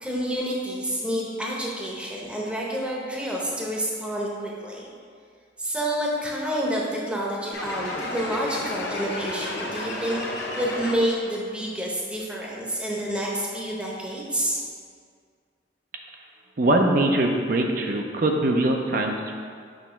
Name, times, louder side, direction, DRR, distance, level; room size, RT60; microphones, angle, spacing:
voice 1, 0.0-4.9 5.6-10.2 10.5-14.6, equal, 5° right, -4 dB, 0.8 m, -28 dB
sound 1, 7.5-11.3, left 2 dB, 65° left, 0.9 m, -32 dB
voice 2, 16.6-19.3, right 1 dB, 50° right, 2 dB, 0.5 m, -22 dB
6.4 x 3.0 x 5.6 m, 2.1 s
head